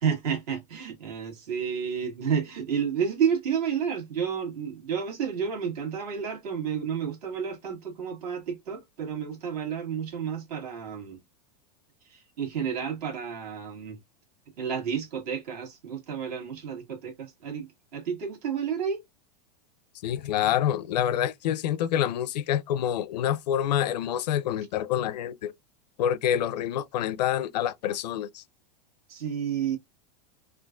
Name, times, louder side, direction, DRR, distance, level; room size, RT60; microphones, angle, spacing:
voice 1, 0.0-11.2 12.1-14.0 14.6-19.0 29.1-29.8, right 7 dB, 70° right, 1.8 m, -31 dB
voice 2, 20.0-25.5 26.0-28.4, left 10 dB, 85° left, 0.5 m, -27 dB
3.7 x 2.4 x 2.4 m
supercardioid pair, 155°, 21 cm